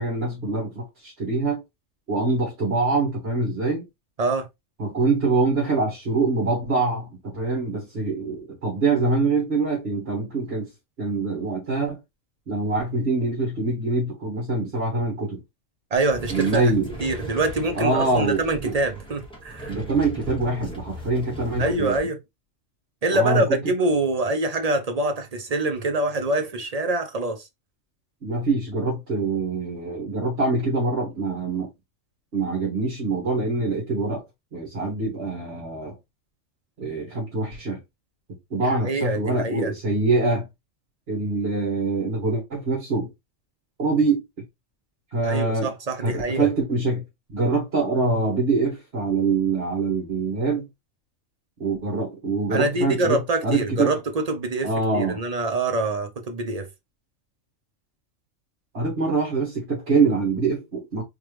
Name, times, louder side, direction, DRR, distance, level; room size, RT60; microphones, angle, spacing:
voice 1, 0.0-1.6 2.1-3.8 4.8-10.7 11.0-12.0 12.5-15.4 16.3-16.9 17.7-18.7 19.7-22.0 23.1-23.6 28.2-31.7 32.3-34.2 34.5-35.9 36.8-37.8 38.5-40.5 41.1-43.1 43.8-44.2 45.1-45.7 46.0-47.0 47.3-50.6 51.6-54.0 54.6-55.2 58.7-61.0, right 3 dB, 55° right, 1.7 m, -24 dB
sound 1, 15.9-22.0, right 1 dB, 5° left, 1.1 m, -37 dB
voice 2, 15.9-16.7 17.0-19.7 21.6-22.2 23.0-27.5 38.5-39.7 45.2-46.5 52.5-56.7, right 2 dB, 40° right, 0.7 m, -25 dB
3.4 x 3.3 x 3.0 m
omnidirectional pair, 1.3 m